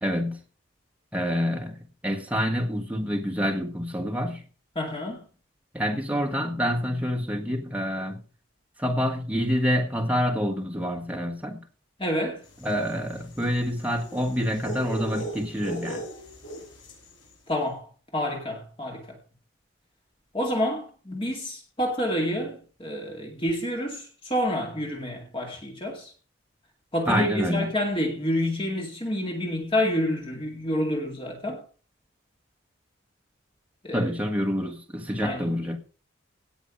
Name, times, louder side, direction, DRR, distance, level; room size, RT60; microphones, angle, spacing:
voice 1, 0.0-0.4 1.1-4.4 5.7-8.2 8.8-11.6 12.6-16.0 27.0-27.7 33.9-35.8, equal, 5° right, 1.5 m, -27 dB
voice 2, 4.8-5.3 12.0-12.4 17.5-17.9 18.1-19.2 20.3-26.1 26.9-31.6 33.8-34.0 35.2-35.6, left 1 dB, 25° left, 2.2 m, -28 dB
sound 1, 12.6-17.1, right 1 dB, 75° left, 6.3 m, -38 dB
17.5 x 6.1 x 5.3 m
head